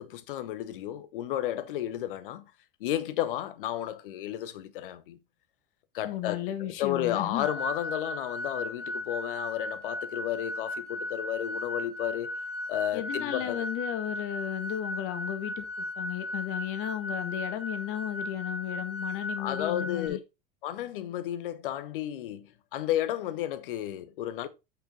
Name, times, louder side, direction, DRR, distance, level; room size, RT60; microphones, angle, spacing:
voice 1, 0.0-2.4 2.8-5.2 5.9-12.4 12.7-13.7 19.4-20.2 20.6-24.5, left 12 dB, 65° left, 1.1 m, -32 dB
voice 2, 6.0-7.5 12.9-15.6 16.0-20.2, left 12 dB, 45° left, 1.7 m, -34 dB
sound 1, 7.4-20.1, left 1 dB, 85° left, 2.9 m, -36 dB
8.1 x 6.3 x 4.1 m
figure-of-eight pair, 80°, 29 cm